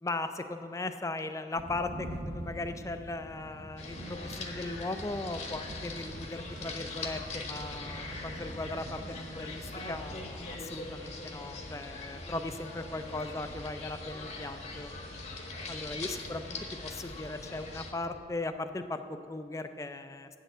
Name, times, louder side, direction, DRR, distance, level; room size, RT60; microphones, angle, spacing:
voice 1, 0.0-14.9 15.7-16.6 16.8-20.3, left 2 dB, 15° left, 9 dB, 0.4 m, -38 dB
sound 1, 1.6-10.2, right 1 dB, 30° right, 0.6 m, -45 dB
sound 2, 3.8-17.9, left 2 dB, 35° left, 0.9 m, -41 dB
8.2 x 6.5 x 7.9 m, 2.3 s
head